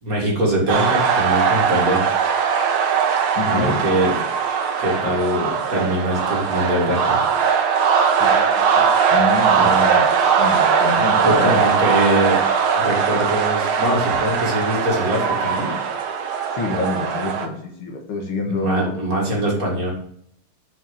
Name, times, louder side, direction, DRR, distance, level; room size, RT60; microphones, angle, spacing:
voice 1, 0.0-2.0 3.4-4.2 4.8-7.2 9.5-9.7 11.2-12.4 12.7-15.7 18.6-19.9, right 1 dB, 40° right, -2 dB, 2.3 m, -22 dB
sound 1, 0.7-17.5, right 6 dB, 75° right, 1.8 m, -20 dB
voice 2, 3.4-3.8 8.1-11.6 16.5-19.0, left 3 dB, 75° left, 2 dB, 2.4 m, -27 dB
6.1 x 5.8 x 7.1 m, 0.68 s
omnidirectional pair, 2.4 m